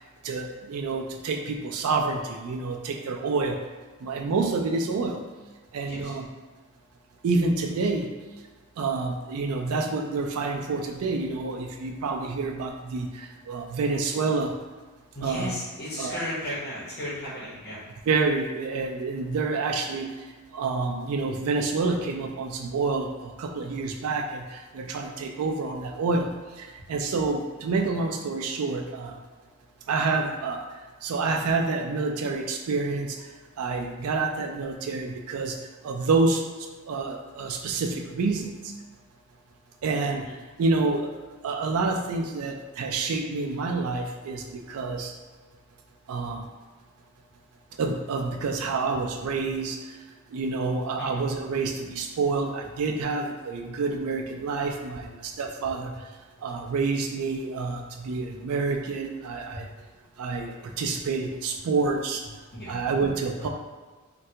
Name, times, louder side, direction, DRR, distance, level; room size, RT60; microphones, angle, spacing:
voice 1, 0.3-3.6 4.0-5.2 5.7-6.3 7.2-8.1 8.8-13.1 13.5-14.5 15.2-15.5 16.0-16.2 18.1-20.1 20.6-23.1 23.4-24.3 24.8-26.3 26.9-29.1 29.9-30.6 31.0-33.1 33.6-35.5 35.8-36.4 36.9-38.5 39.8-40.2 40.6-41.1 41.4-44.4 44.7-45.1 46.1-46.4 47.8-49.8 50.3-55.0 55.4-55.9 56.4-59.6 60.2-62.2 62.7-63.5, right 3 dB, 75° right, 3 dB, 0.3 m, -28 dB
voice 2, 15.1-17.8 40.2-40.3 51.0-51.2 59.5-59.6 62.5-62.8, left 1 dB, 45° left, -9 dB, 1.0 m, -35 dB
3.2 x 2.3 x 2.8 m, 1.3 s
head